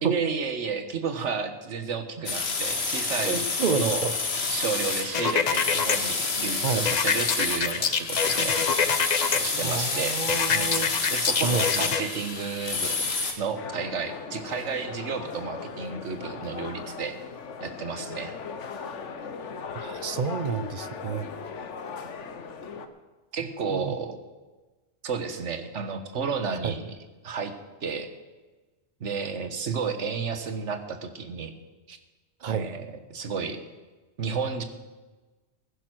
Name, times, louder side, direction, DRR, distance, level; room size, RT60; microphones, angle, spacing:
voice 1, 0.0-4.1 4.5-8.6 9.3-10.2 10.5-13.1 13.4-17.1 17.6-18.4 23.3-24.2 25.0-27.5 27.8-28.1 29.0-31.5 31.9-32.0 32.5-33.6 34.2-34.6, right 5 dB, 80° right, 8 dB, 1.5 m, -32 dB
sound 1, 2.3-13.3, left 4 dB, 60° left, 1.7 m, -29 dB
voice 2, 3.2-4.1 6.6-6.9 9.6-10.9 11.4-11.7 19.8-21.3 23.7-23.9 26.6-26.7 32.4-32.6, right 5 dB, 45° right, 13 dB, 0.8 m, -29 dB
sound 2, 5.1-6.0 6.9-9.4 10.3-12.0, left 6 dB, 45° left, 0.7 m, -25 dB
sound 3, 13.6-22.9, left 5 dB, 80° left, 1.3 m, -38 dB
16.0 x 10.0 x 6.1 m, 1.2 s
omnidirectional pair, 1.2 m